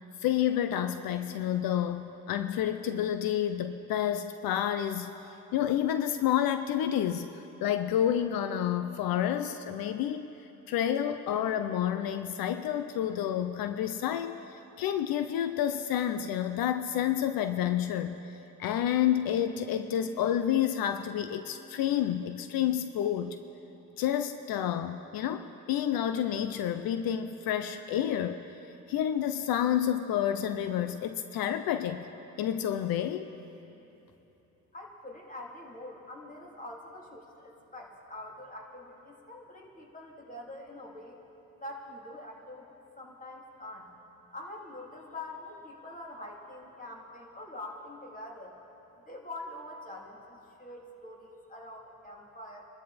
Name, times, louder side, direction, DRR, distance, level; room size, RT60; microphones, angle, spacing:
voice 1, 0.2-5.1 5.5-10.3 10.7-18.3 18.6-23.4 24.0-28.4 28.9-32.1 32.4-33.3, left 10 dB, 85° left, 9 dB, 0.7 m, -29 dB
voice 2, 34.7-41.2 41.6-42.7 43.0-43.9 44.3-48.5 49.1-52.7, left 1 dB, 25° left, -2 dB, 3.0 m, -45 dB
26.0 x 13.0 x 4.2 m, 3.0 s
cardioid pair, 75°, 35 cm